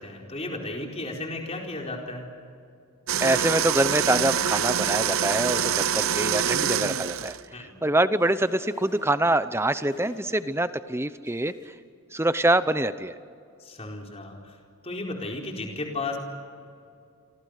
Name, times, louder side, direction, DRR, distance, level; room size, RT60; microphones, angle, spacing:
voice 1, 0.0-2.3 7.5-7.7 13.6-14.6 14.8-16.2, left 2 dB, 30° left, 0 dB, 4.4 m, -34 dB
sound 1, 3.1-7.4, right 8 dB, 70° right, 0.9 m, -25 dB
voice 2, 3.2-11.7 12.1-13.1, right 1 dB, 10° right, 13 dB, 0.7 m, -25 dB
sound 2, 8.2-9.2 9.9-10.6 10.9-11.7, left 1 dB, 50° left, 4.3 m, -48 dB
29.0 x 24.5 x 6.6 m, 2.4 s
head